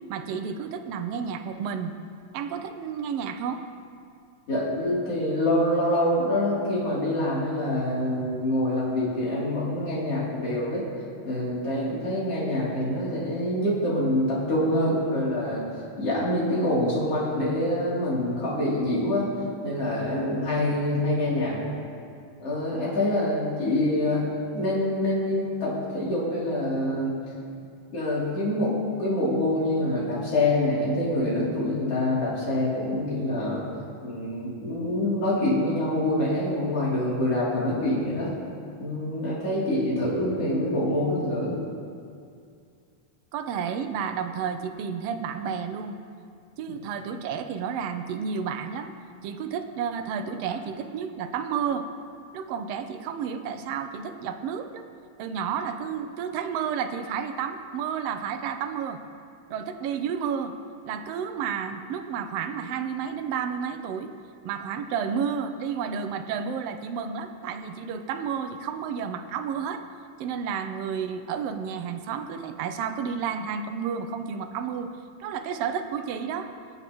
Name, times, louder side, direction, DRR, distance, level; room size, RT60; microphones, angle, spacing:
voice 1, 0.1-1.9 2.3-3.6 43.3-46.0 46.6-48.9 49.2-51.9 52.3-54.8 55.2-59.0 59.5-60.6 60.8-64.1 64.4-69.8 70.2-74.9 75.2-76.5, right 7 dB, 75° right, 7 dB, 1.4 m, -31 dB
voice 2, 4.5-10.9 11.2-15.6 16.0-19.3 19.6-21.6 22.4-27.2 27.9-28.7 29.0-33.6 34.0-38.3 38.8-41.6, left 1 dB, 50° left, -8 dB, 4.1 m, -26 dB
23.5 x 8.1 x 3.0 m, 2.3 s
omnidirectional pair, 3.4 m